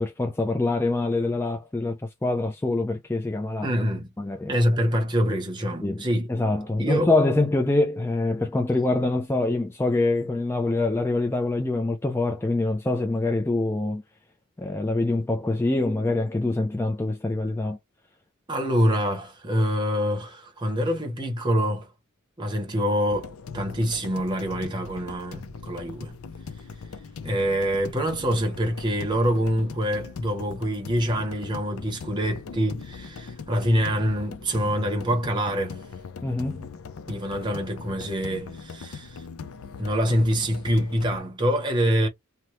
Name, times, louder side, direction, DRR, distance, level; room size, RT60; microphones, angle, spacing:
voice 1, 0.0-3.7 4.2-4.5 5.8-6.0 6.3-14.0 14.6-17.8 36.2-36.7, left 2 dB, 10° left, 0.3 m, -25 dB
voice 2, 3.6-4.1 4.5-6.3 6.8-7.1 18.5-21.9 22.4-26.1 27.2-35.8 37.1-39.2 39.8-42.1, equal, 20° right, 0.7 m, -25 dB
sound 1, 23.1-41.2, left 5 dB, 70° left, 0.5 m, -40 dB
2.9 x 2.1 x 3.0 m
head